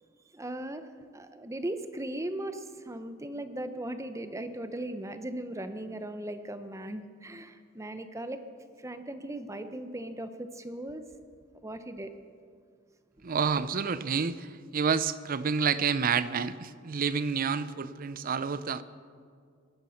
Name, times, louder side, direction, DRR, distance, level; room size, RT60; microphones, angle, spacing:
voice 1, 0.3-0.9 1.1-8.4 8.8-11.0 11.6-12.1 13.2-13.3, right 1 dB, 15° right, 9 dB, 0.8 m, -38 dB
voice 2, 13.2-18.8, right 6 dB, 45° right, 15 dB, 0.5 m, -29 dB
18.0 x 11.5 x 5.7 m, 2.1 s
head